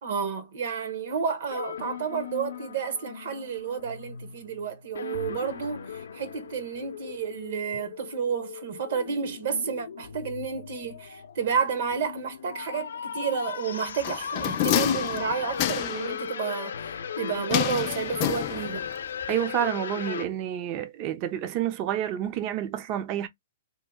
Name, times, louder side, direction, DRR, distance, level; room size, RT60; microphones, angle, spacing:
voice 1, 0.0-16.8 17.2-18.9, right 6 dB, 60° right, 1.0 m, -31 dB
sound 1, 1.5-20.3, left 7 dB, 85° left, 0.5 m, -37 dB
sound 2, 14.0-16.1 17.5-18.9 19.2-19.3, left 13 dB, 35° left, 0.4 m, -28 dB
voice 2, 19.3-23.3, right 11 dB, 30° right, 0.4 m, -29 dB
2.9 x 2.2 x 3.4 m
hypercardioid pair, 160°, 0 cm